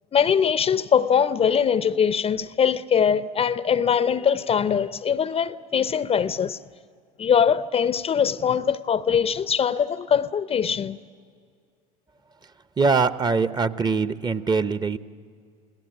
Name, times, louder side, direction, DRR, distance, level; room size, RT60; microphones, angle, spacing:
voice 1, 0.1-6.6 7.2-11.0, left 7 dB, 30° left, 0.6 m, -22 dB
voice 2, 12.8-15.0, right 4 dB, 20° right, 0.8 m, -22 dB
29.0 x 17.5 x 9.0 m
hypercardioid pair, 75°, 19 cm